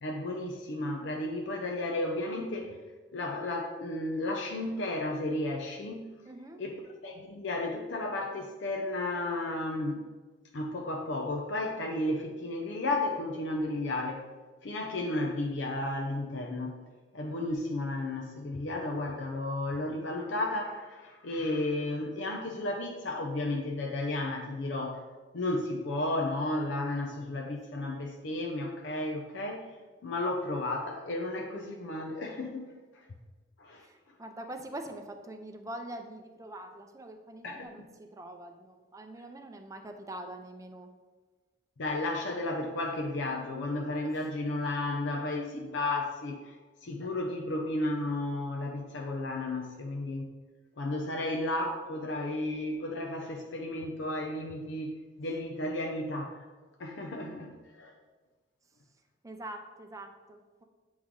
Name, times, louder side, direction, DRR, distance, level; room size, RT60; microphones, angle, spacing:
voice 1, 0.0-2.8 3.1-6.1 6.6-6.8 7.0-10.1 10.5-14.3 14.6-16.8 17.1-25.0 25.3-29.7 30.0-32.6 33.6-33.8 37.4-37.6 41.8-50.3 50.8-56.4 56.8-57.9, left 2 dB, 85° left, 2 dB, 0.6 m, -33 dB
voice 2, 6.3-6.7 33.8-40.9 44.0-44.2 59.2-60.6, right 1 dB, 20° right, 5 dB, 0.5 m, -44 dB
8.2 x 3.1 x 3.7 m, 1.3 s
head